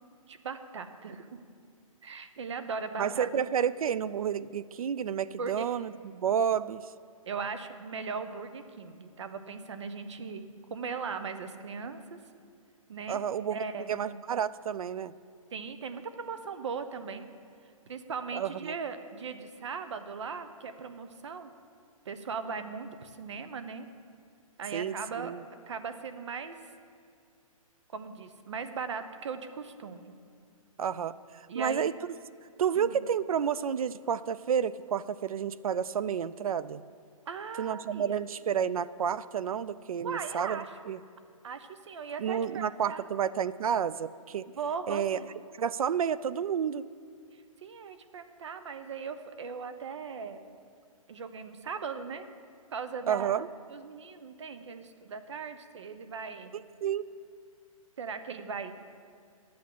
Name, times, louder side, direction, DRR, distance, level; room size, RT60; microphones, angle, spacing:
voice 1, 0.3-1.4 2.0-3.3 5.4-5.6 6.1-6.2 7.3-10.4 10.7-12.2 12.9-13.2 13.5-13.9 15.5-17.3 17.9-21.5 22.0-23.9 24.6-25.3 25.7-26.6 27.9-30.1 31.5-31.9 32.7-33.0 37.3-38.2 40.0-40.7 41.4-43.0 44.5-45.3 47.3-50.4 51.1-52.3 52.7-53.4 53.7-56.5 58.0-58.7, right 5 dB, 55° right, 10 dB, 0.9 m, -38 dB
voice 2, 3.0-6.9 13.1-15.1 18.3-18.8 24.7-25.4 30.8-31.9 32.6-36.8 37.6-41.0 42.2-44.5 44.9-45.2 45.6-46.9 53.1-53.5 56.5-57.1, right 8 dB, 75° right, 17 dB, 0.5 m, -30 dB
11.5 x 8.6 x 7.6 m, 2.3 s
hypercardioid pair, 175°, 18 cm